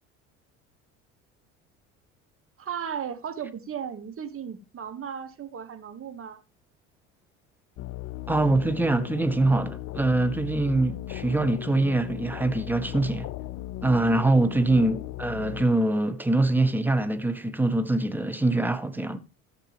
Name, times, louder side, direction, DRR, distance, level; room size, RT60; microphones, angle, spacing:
voice 1, 2.6-6.4 14.0-14.3, right 8 dB, 35° right, 1.5 m, -36 dB
sound 1, 7.8-15.7, left 15 dB, 45° left, 0.7 m, -37 dB
voice 2, 8.3-13.3 13.8-19.2, right 2 dB, 5° right, 1.0 m, -24 dB
13.5 x 6.7 x 3.5 m
hypercardioid pair, 70°, 39 cm